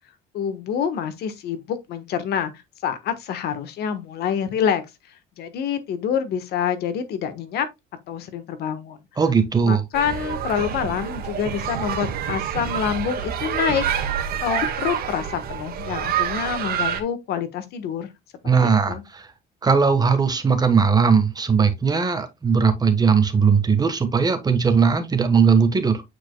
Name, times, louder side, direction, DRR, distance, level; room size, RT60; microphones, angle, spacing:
voice 1, 0.3-2.5 2.8-4.8 5.4-7.7 8.1-9.0 9.7-13.8 14.4-18.1 18.6-19.0, left 8 dB, 75° left, 1.2 m, -26 dB
voice 2, 9.2-9.8 18.4-19.3 19.6-26.0, right 5 dB, 25° right, 1.3 m, -19 dB
sound 1, 9.9-17.0, right 8 dB, 65° right, 1.6 m, -27 dB
8.9 x 4.7 x 2.2 m
cardioid pair, 110°, 17 cm